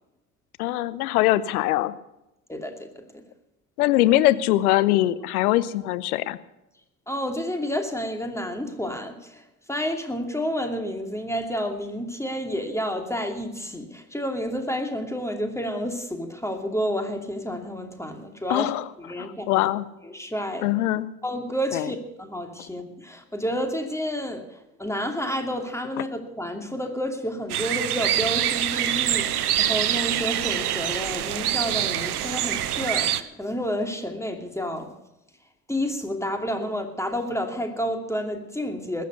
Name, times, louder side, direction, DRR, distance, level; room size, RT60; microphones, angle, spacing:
voice 1, 0.6-1.9 3.8-6.4 18.5-18.9 19.2-19.9 20.6-21.1 21.7-21.9, left 15 dB, 80° left, 16 dB, 0.8 m, -22 dB
voice 2, 2.5-3.2 7.1-18.7 19.0-19.7 20.0-20.7 21.2-34.9 35.7-39.0, equal, 5° left, 5 dB, 2.6 m, -30 dB
sound 1, 27.5-33.2, right 11 dB, 90° right, 0.6 m, -25 dB
sound 2, 28.0-33.1, right 10 dB, 40° right, 0.8 m, -39 dB
20.5 x 7.6 x 6.8 m, 0.92 s
hypercardioid pair, 55°, 44 cm